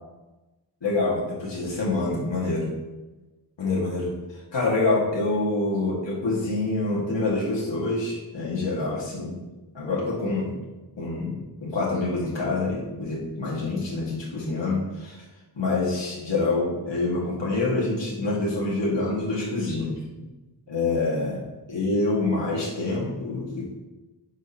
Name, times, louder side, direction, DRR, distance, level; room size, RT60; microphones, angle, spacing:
voice 1, 0.8-2.7 3.6-4.1 4.5-9.4 9.7-10.5 11.0-15.2 15.6-20.0 20.7-21.4 21.7-23.7, left 2 dB, 90° left, -5 dB, 2.0 m, -26 dB
9.7 x 6.2 x 2.9 m, 1.1 s
wide cardioid pair, 85°, 43 cm